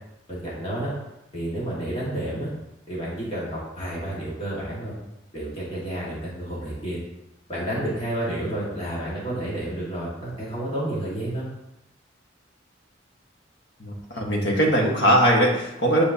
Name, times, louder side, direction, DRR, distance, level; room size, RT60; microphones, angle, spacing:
voice 1, 0.3-0.9 1.3-2.5 2.9-4.9 5.3-7.0 7.5-11.5, right 1 dB, 30° left, -7 dB, 1.8 m, -30 dB
voice 2, 13.8-16.0, equal, 65° left, -2 dB, 1.4 m, -20 dB
8.2 x 4.4 x 2.8 m, 0.89 s
head